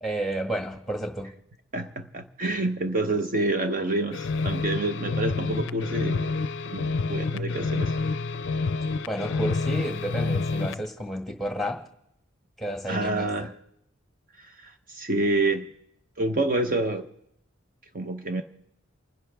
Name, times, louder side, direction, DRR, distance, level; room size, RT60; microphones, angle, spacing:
voice 1, 0.0-1.3 9.1-11.8 12.6-13.3, right 1 dB, ahead, 4 dB, 1.5 m, -31 dB
voice 2, 1.7-6.3 6.7-7.9 12.9-13.5 14.4-15.7 16.2-17.1 17.9-18.4, right 2 dB, 45° right, 6 dB, 0.8 m, -28 dB
sound 1, 4.1-10.9, left 3 dB, 60° left, 0.4 m, -28 dB
29.5 x 10.5 x 3.4 m, 0.76 s
head